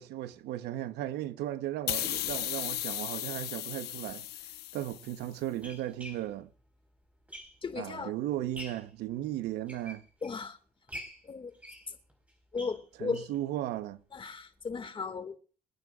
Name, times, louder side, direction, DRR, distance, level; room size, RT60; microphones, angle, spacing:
voice 1, 0.0-4.3 4.7-6.5 7.8-10.0 13.0-14.0, right 13 dB, 80° right, 1.0 m, -36 dB
sound 1, 1.9-5.3, left 13 dB, 75° left, 1.0 m, -35 dB
sound 2, 4.1-4.2 4.9-7.9 8.3-9.0 9.5-10.5 10.9-13.4 13.8-13.9 14.2-14.3 14.6-14.7, equal, 10° right, 4.8 m, -47 dB
voice 2, 7.6-8.1 10.2-10.6 11.3-11.5 12.5-13.2 14.1-15.3, left 5 dB, 30° left, 2.1 m, -36 dB
27.0 x 9.3 x 2.5 m
cardioid pair, 110°, 17 cm